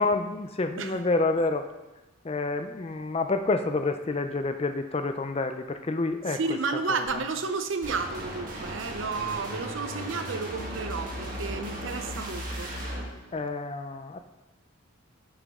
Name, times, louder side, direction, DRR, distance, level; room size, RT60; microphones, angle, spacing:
voice 1, 0.0-1.7 2.2-6.4 6.9-7.2 13.3-14.2, left 3 dB, 25° left, 8 dB, 0.4 m, -28 dB
voice 2, 6.3-12.7, right 4 dB, 60° right, 8 dB, 0.6 m, -32 dB
sound 1, 7.8-13.0, equal, 35° right, 1.7 m, -36 dB
10.5 x 6.9 x 3.6 m, 1.1 s
head